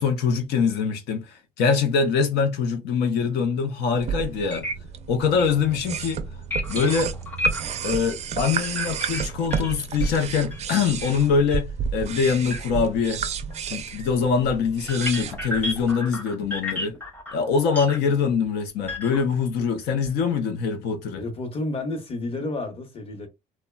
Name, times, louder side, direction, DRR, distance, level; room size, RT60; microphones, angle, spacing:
voice 1, 0.0-4.7 5.1-6.2 6.7-7.1 7.8-13.2 13.7-17.0 17.3-21.2, left 5 dB, 85° left, 0.5 m, -23 dB
sound 1, 3.9-15.9, right 6 dB, 40° right, 0.4 m, -31 dB
sound 2, 4.5-4.7 5.0-5.1 5.4-5.5 6.5-7.8 8.6-10.7 11.0-11.2 11.4-11.6 11.9-12.1 12.5-12.6 13.5-13.6 14.8-18.0 18.8-19.4 19.8-20.1, left 1 dB, 10° left, 0.7 m, -31 dB
voice 2, 21.1-23.3, left 2 dB, 35° left, 0.9 m, -31 dB
3.0 x 2.1 x 2.2 m
cardioid pair, 110°, 17 cm